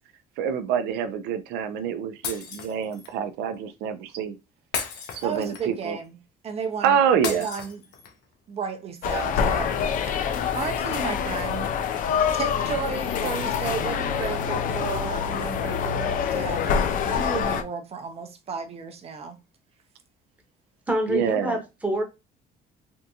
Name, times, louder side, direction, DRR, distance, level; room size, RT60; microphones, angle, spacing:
voice 1, 0.4-4.4 5.1-6.0 6.8-7.5 21.1-21.6, right 8 dB, 90° right, 0.5 m, -26 dB
Shatter, 2.2-3.1 4.7-5.8 7.2-8.2, left 6 dB, 80° left, 0.8 m, -34 dB
voice 2, 5.2-6.2 6.4-7.0 7.2-7.8 8.5-10.2 10.5-11.7 12.3-19.4, right 6 dB, 35° right, 0.5 m, -33 dB
sound 1, 9.0-17.6, left 7 dB, 55° left, 0.4 m, -26 dB
voice 3, 20.9-22.0, equal, 10° right, 0.8 m, -26 dB
3.5 x 2.5 x 2.7 m
cardioid pair, 130°, 17 cm